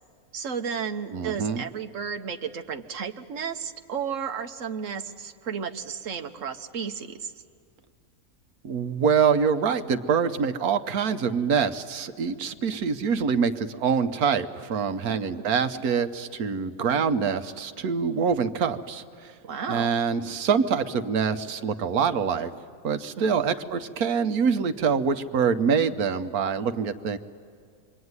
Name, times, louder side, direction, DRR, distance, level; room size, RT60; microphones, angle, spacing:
voice 1, 0.3-7.3 15.0-15.4 19.4-19.9 23.2-23.3, right 6 dB, 60° right, 6 dB, 1.4 m, -33 dB
voice 2, 1.1-1.6 8.6-19.3 19.7-22.5 22.8-27.2, right 6 dB, 75° right, 9 dB, 1.4 m, -25 dB
26.0 x 23.0 x 9.6 m, 2.2 s
omnidirectional pair, 1.6 m